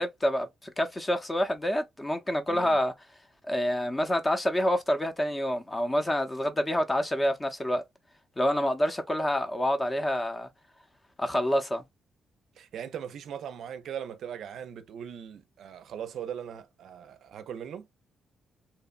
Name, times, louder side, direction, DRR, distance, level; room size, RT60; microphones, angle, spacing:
voice 1, 0.0-2.9 3.4-7.8 8.4-10.5 11.2-11.8, equal, 20° left, 0.6 m, -27 dB
voice 2, 2.5-2.8 12.6-17.9, right 8 dB, 75° right, 0.4 m, -39 dB
2.8 x 2.1 x 2.4 m
cardioid pair, 80°, 0 cm